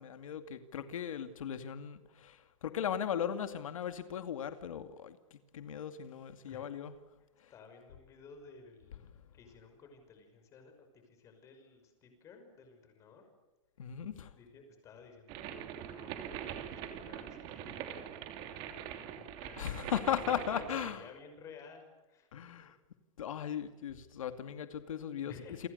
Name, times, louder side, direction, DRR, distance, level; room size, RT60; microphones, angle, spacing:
voice 1, 0.0-6.9 7.4-7.5 13.8-14.3 19.6-21.0 22.3-22.8 23.2-25.4, left 9 dB, 90° left, 9 dB, 2.5 m, -37 dB
voice 2, 7.5-9.0 9.3-13.3 14.4-19.8 20.2-22.6 25.2-25.7, left 5 dB, 20° left, 6 dB, 5.8 m, -55 dB
sound 1, 15.3-21.0, right 10 dB, 30° right, 3.0 m, -43 dB
30.0 x 24.0 x 6.8 m, 1.1 s
supercardioid pair, 175°, 17 cm